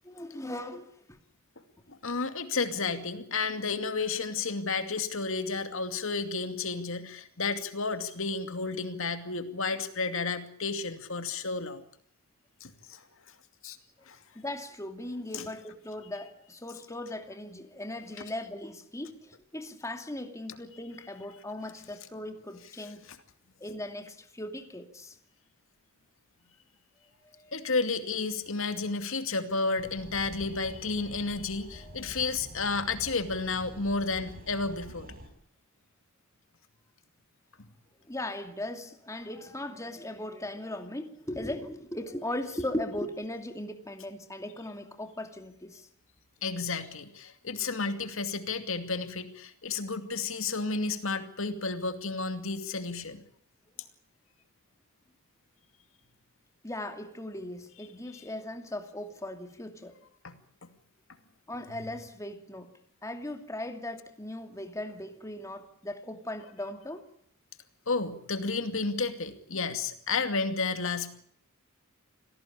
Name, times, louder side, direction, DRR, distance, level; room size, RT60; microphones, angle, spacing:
voice 1, 0.0-1.2 14.3-23.0 23.6-25.2 27.2-27.5 31.8-32.1 38.1-45.9 56.6-59.9 61.5-62.7 63.0-67.0, left 1 dB, 15° left, 2.5 m, -38 dB
voice 2, 1.9-11.8 12.6-13.0 13.6-13.8 14.1-14.2 15.3-15.5 27.5-35.1 46.4-53.2 60.2-60.3 67.9-71.1, left 4 dB, 70° left, 2.5 m, -32 dB
sound 1, 29.8-35.3, equal, 45° right, 5.9 m, -47 dB
27.0 x 18.0 x 8.5 m
head